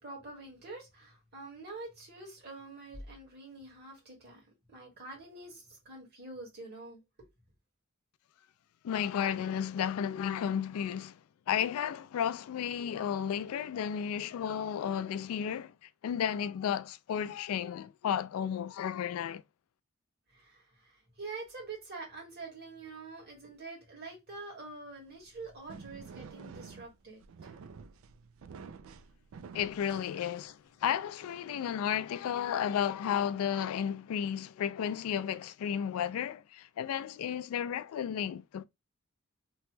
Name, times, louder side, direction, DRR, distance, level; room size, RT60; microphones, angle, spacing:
voice 1, 0.0-4.4 4.7-7.0 20.3-27.6, right 3 dB, 50° right, 1.5 m, -46 dB
voice 2, 8.8-11.2 11.5-15.7 16.0-19.4 29.5-38.6, left 8 dB, 85° left, 0.3 m, -33 dB
sound 1, 25.1-30.7, right 5 dB, 70° right, 0.3 m, -50 dB
3.0 x 2.2 x 3.0 m
head